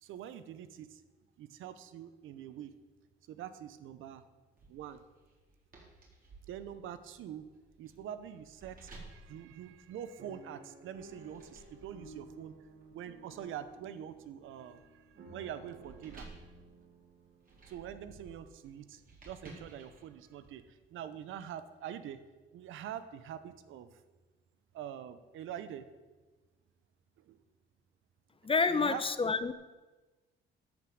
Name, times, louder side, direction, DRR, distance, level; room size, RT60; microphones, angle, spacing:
voice 1, 0.0-1.0 1.4-2.7 3.3-4.2 4.7-5.0 6.5-7.5 7.8-12.5 12.9-16.3 17.7-22.2 22.5-23.9 24.7-25.8 27.3-27.4 28.7-29.0, right 10 dB, 85° right, 12 dB, 0.9 m, -45 dB
sound 1, 4.6-10.4 11.0-20.5, right 2 dB, 45° right, 4.2 m, -56 dB
sound 2, 10.2-18.3 18.9-19.0 19.2-19.5, right 2 dB, 60° right, 2.1 m, -55 dB
voice 2, 28.4-29.5, left 4 dB, 25° left, 13 dB, 0.8 m, -28 dB
13.0 x 6.2 x 7.9 m, 1.2 s
cardioid pair, 90°, 20 cm